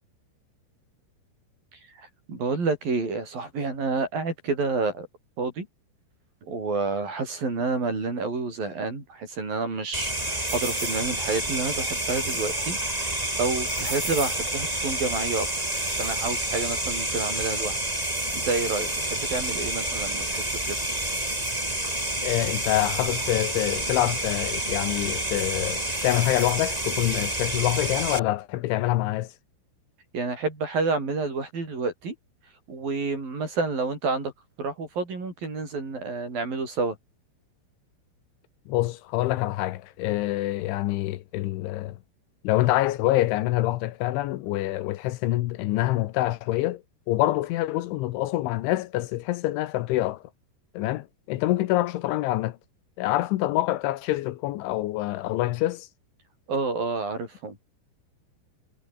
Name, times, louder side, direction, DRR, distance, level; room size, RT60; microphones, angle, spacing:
voice 1, 1.7-5.1 5.4-5.7 6.4-15.5 16.0-17.8 18.3-20.8 30.1-32.1 32.7-34.3 34.6-37.0 56.5-57.6, right 3 dB, 45° right, 9.3 m, -29 dB
sound 1, 9.9-28.2, right 1 dB, 10° right, 3.9 m, -29 dB
voice 2, 22.2-29.3 38.7-42.0 42.4-50.2 50.7-52.6 53.0-55.9, left 16 dB, 80° left, 3.3 m, -26 dB
omnidirectional pair, 5.6 m